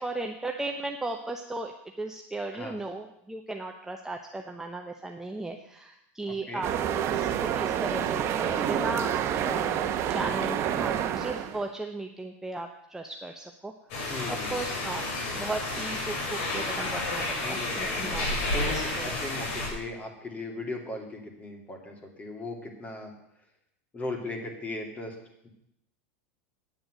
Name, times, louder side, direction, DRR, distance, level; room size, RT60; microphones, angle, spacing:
voice 1, 0.0-9.1 9.4-13.7 14.3-18.3 18.6-19.2, right 2 dB, 5° right, 3 dB, 0.8 m, -36 dB
voice 2, 6.3-6.6 14.1-14.8 17.4-23.1 23.9-25.2 25.4-25.5, left 2 dB, 20° left, 3 dB, 2.7 m, -38 dB
sound 1, 6.6-11.6, right 9 dB, 40° right, 1.1 m, -28 dB
sound 2, 13.9-19.7, left 2 dB, 65° left, 4.7 m, -31 dB
9.2 x 7.8 x 7.8 m, 0.80 s
supercardioid pair, 120°, 7 cm